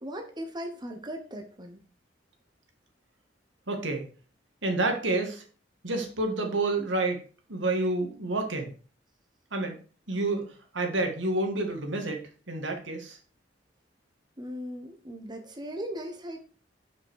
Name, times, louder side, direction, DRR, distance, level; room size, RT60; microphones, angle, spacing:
voice 1, 0.0-1.8 14.4-16.4, equal, 25° right, 4 dB, 1.1 m, -38 dB
voice 2, 3.7-4.0 4.6-5.4 5.8-7.2 7.5-8.7 9.5-9.8 10.1-10.5 10.7-13.2, right 2 dB, 80° right, 3 dB, 2.0 m, -29 dB
8.0 x 5.7 x 4.8 m, 0.39 s
head